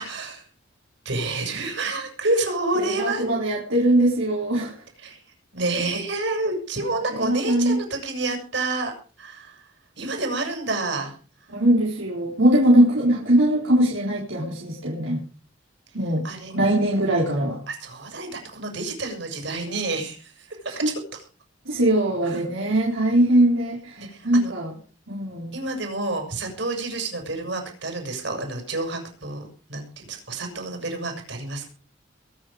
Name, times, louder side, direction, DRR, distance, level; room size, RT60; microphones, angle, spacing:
voice 1, 0.0-0.4 1.1-3.2 5.0-5.2 5.5-8.9 9.2-9.6 10.0-11.1 16.2-16.5 17.7-20.5 20.8-20.9 22.3-22.4 24.0-24.5 25.5-31.7, right 2 dB, 60° right, 4 dB, 7.1 m, -29 dB
voice 2, 2.8-4.7 7.1-7.8 11.5-15.2 15.9-16.3 16.5-17.6 20.7-20.9 21.7-24.7 25.1-25.5, right 1 dB, 75° right, -3 dB, 4.3 m, -21 dB
22.5 x 9.8 x 5.1 m, 0.39 s
head